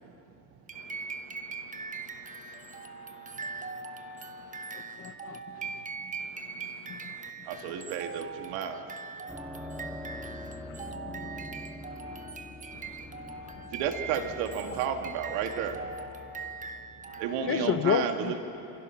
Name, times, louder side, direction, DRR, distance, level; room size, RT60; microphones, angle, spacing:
sound 1, 0.7-17.7, right 5 dB, 15° right, 1.0 m, -41 dB
voice 1, 0.8-4.1 4.6-5.0 6.3-7.3 10.2-10.9 11.9-12.3 13.1-13.7 17.1-17.2, left 9 dB, 50° left, 8 dB, 1.7 m, -55 dB
voice 2, 5.0-5.4 10.9-11.5 17.5-18.4, left 8 dB, 30° left, 11 dB, 0.7 m, -30 dB
voice 3, 7.5-8.8 13.7-15.8 17.2-18.4, right 7 dB, 70° right, 5 dB, 2.3 m, -32 dB
sound 2, 9.3-17.6, left 1 dB, ahead, 1.4 m, -45 dB
27.0 x 27.0 x 5.8 m, 2.9 s
cardioid pair, 130°, 46 cm